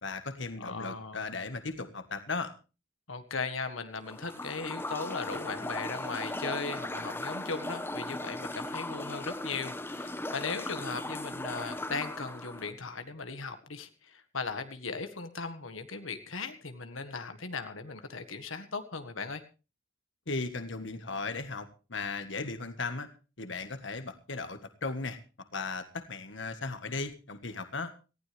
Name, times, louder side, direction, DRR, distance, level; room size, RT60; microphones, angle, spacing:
voice 1, 0.0-2.5 20.3-23.1 23.4-25.2 25.5-27.9, left 3 dB, 65° left, 9 dB, 1.6 m, -36 dB
voice 2, 0.6-1.2 3.1-19.4, left 4 dB, 90° left, 8 dB, 1.6 m, -38 dB
sound 1, 4.0-12.7, left 1 dB, 10° left, 1.1 m, -38 dB
19.0 x 15.0 x 3.4 m, 0.33 s
head